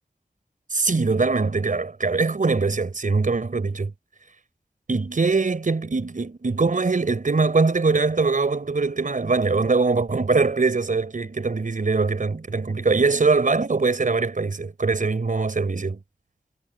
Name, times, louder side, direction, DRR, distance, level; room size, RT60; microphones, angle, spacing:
voice 1, 0.7-3.9 4.9-16.0, right 4 dB, 65° right, 4.9 m, -22 dB
wide cardioid pair, 55°, 15 cm